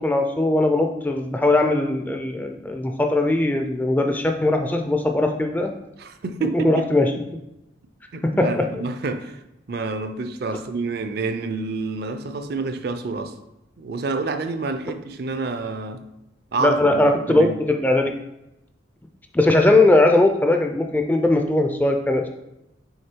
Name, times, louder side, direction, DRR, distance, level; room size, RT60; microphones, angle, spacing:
voice 1, 0.0-5.7 6.6-7.1 8.2-8.6 16.6-18.1 19.3-22.3, left 2 dB, 10° left, 4 dB, 0.3 m, -19 dB
voice 2, 6.0-6.9 8.1-9.4 9.7-13.4 13.8-16.0 16.5-17.6, right 3 dB, 50° right, 9 dB, 0.4 m, -28 dB
6.5 x 3.4 x 4.5 m, 0.89 s
head